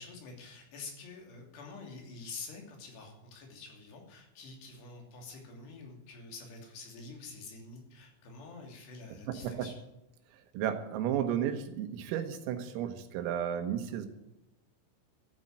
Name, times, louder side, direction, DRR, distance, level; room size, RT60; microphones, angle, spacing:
voice 1, 0.0-9.7, left 4 dB, 60° left, 2 dB, 4.9 m, -47 dB
voice 2, 9.3-9.7 10.3-14.1, right 9 dB, 85° right, 8 dB, 3.9 m, -33 dB
13.5 x 9.8 x 7.7 m, 0.90 s
omnidirectional pair, 5.9 m